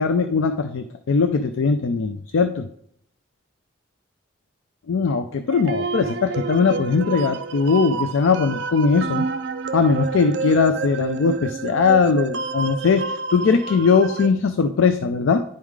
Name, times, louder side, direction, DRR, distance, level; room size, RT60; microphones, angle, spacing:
voice 1, 0.0-2.7 4.9-9.3 9.7-15.4, left 5 dB, 80° left, 9 dB, 0.4 m, -20 dB
sound 1, 5.5-14.3, right 5 dB, 60° right, 0.4 m, -29 dB
10.5 x 3.7 x 4.7 m, 0.71 s
head